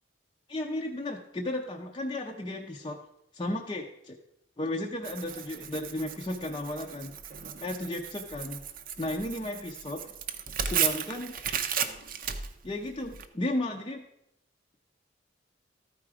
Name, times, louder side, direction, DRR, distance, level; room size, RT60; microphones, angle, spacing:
voice 1, 0.5-3.0 3.3-4.2 4.6-7.1 7.6-8.6 9.0-10.1 10.6-11.4 12.6-14.1, left 1 dB, 25° left, 1 dB, 0.6 m, -34 dB
Tearing, 5.0-13.3, right 8 dB, 50° right, 0.6 m, -35 dB
13.0 x 4.8 x 4.8 m, 0.82 s
head